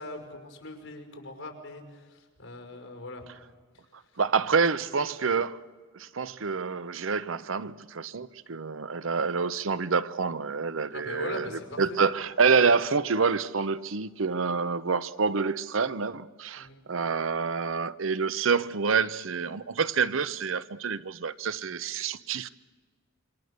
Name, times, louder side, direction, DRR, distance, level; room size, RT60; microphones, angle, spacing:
voice 1, 0.0-3.3 10.9-12.0 16.6-16.8, left 2 dB, 70° left, 5.5 m, -41 dB
voice 2, 4.2-5.6 5.9-22.5, right 5 dB, 80° right, 0.7 m, -27 dB
27.0 x 25.5 x 6.6 m
head